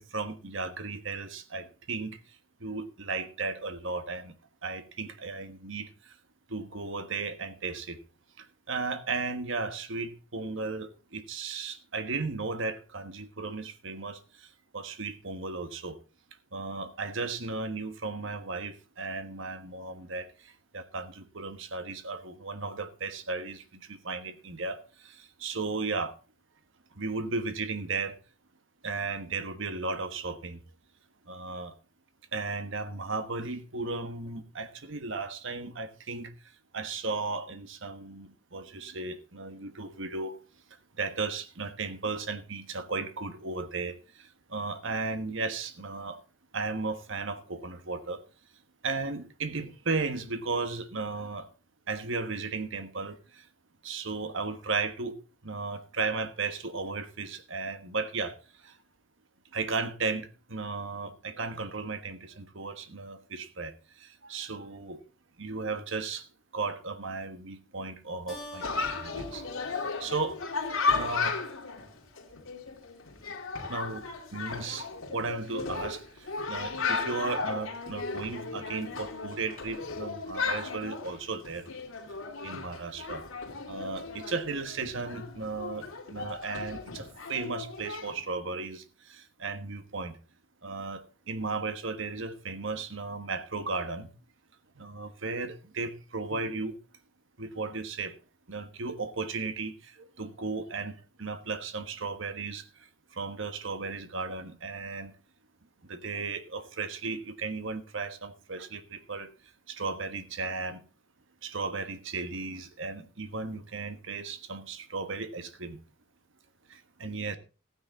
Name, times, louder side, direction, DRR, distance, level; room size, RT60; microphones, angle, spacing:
voice 1, 0.0-2.2 2.6-4.3 4.6-5.9 6.5-8.0 8.7-14.2 14.7-16.0 16.5-20.3 20.7-23.6 23.9-24.8 25.4-26.1 27.0-28.1 28.8-30.6 31.3-31.7 32.3-36.3 36.7-40.3 41.0-43.9 44.5-46.2 46.5-48.2 48.8-51.5 51.9-53.2 53.8-55.1 55.4-58.3 59.5-63.7 64.2-65.0 65.4-66.2 66.5-68.6 69.0-69.4 70.0-70.4 70.9-71.4 73.7-74.0 74.3-74.8 75.1-76.0 76.5-81.6 82.4-83.2 83.7-85.8 86.1-88.8 89.4-90.1 90.6-94.1 94.8-96.7 97.4-98.1 98.5-99.7 100.2-102.6 103.2-105.1 105.9-109.3 109.7-110.8 111.4-115.8 117.0-117.4, right 3 dB, 60° right, 1.3 m, -35 dB
Keyboard (musical), 68.3-71.2, right 1 dB, ahead, 4.4 m, -47 dB
Chatter, 68.6-88.2, left 4 dB, 70° left, 2.7 m, -35 dB
15.0 x 9.6 x 4.0 m
head